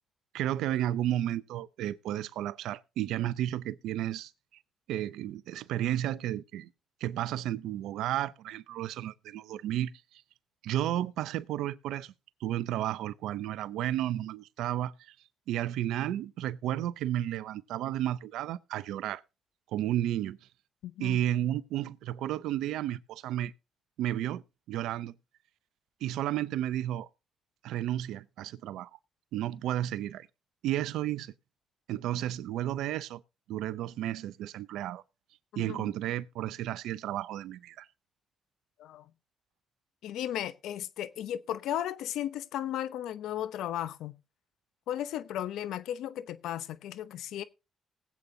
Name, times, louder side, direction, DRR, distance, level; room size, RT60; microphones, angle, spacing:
voice 1, 0.3-4.3 4.9-6.7 7.0-9.9 10.6-12.1 12.4-15.1 15.5-19.2 19.7-20.4 21.0-23.5 24.0-24.4 24.7-25.1 26.0-27.1 27.6-29.0 29.3-30.3 30.6-31.3 31.9-33.2 33.5-35.0 35.6-37.9, right 12 dB, 90° right, 0.5 m, -32 dB
voice 2, 20.8-21.2 35.5-35.9 38.8-39.1 40.0-44.2 44.9-47.4, left 11 dB, 85° left, 0.7 m, -35 dB
20.0 x 8.3 x 2.7 m
supercardioid pair, 65°, 0 cm